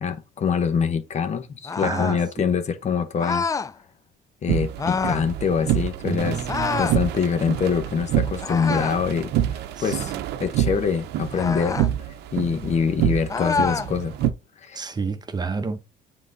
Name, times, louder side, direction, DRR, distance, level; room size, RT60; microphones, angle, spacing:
voice 1, 0.0-3.5 4.4-6.4 6.8-10.1 10.4-11.8 12.3-14.1 14.6-14.8, left 6 dB, 40° left, 1.0 m, -24 dB
sound 1, 1.6-2.2 3.2-3.7 4.8-5.3 6.5-7.0 8.4-9.0 11.3-11.9 13.3-13.9, left 5 dB, 20° left, 0.4 m, -26 dB
voice 2, 1.8-2.5 6.0-6.8 9.8-10.2 14.7-15.8, right 4 dB, 25° right, 0.9 m, -30 dB
sound 2, 4.5-14.3, right 12 dB, 80° right, 0.7 m, -27 dB
7.4 x 3.9 x 4.0 m
cardioid pair, 110°, 17 cm